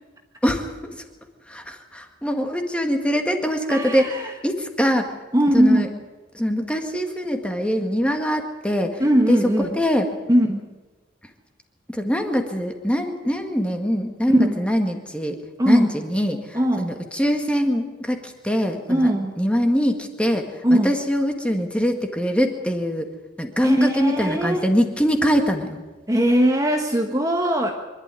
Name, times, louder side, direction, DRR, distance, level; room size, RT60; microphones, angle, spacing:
voice 1, 0.4-1.0 1.5-5.1 5.5-5.9 6.3-9.0 9.3-10.1 11.9-23.1 23.4-25.8, equal, 5° left, 4 dB, 1.8 m, -23 dB
voice 2, 3.7-4.3 5.3-5.9 9.0-9.8 10.3-10.7 14.3-14.6 15.6-15.9 16.5-16.9 18.9-19.4 20.6-20.9 23.6-24.7 26.1-27.7, right 1 dB, 20° right, 3 dB, 1.3 m, -20 dB
25.0 x 12.0 x 9.7 m, 1.3 s
head